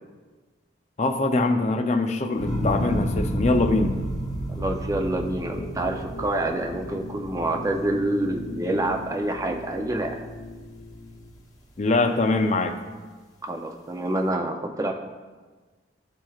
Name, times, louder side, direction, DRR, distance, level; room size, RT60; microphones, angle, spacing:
voice 1, 1.0-4.0 11.8-12.7, left 2 dB, 35° left, 6 dB, 0.4 m, -23 dB
sound 1, 2.4-8.7 9.1-9.7, equal, 20° left, 0.9 m, -30 dB
voice 2, 4.5-10.2 13.4-15.0, right 1 dB, 15° right, 2 dB, 0.5 m, -27 dB
sound 2, 4.6-11.3, left 1 dB, 75° left, 0.7 m, -40 dB
13.0 x 4.4 x 2.4 m, 1.4 s
head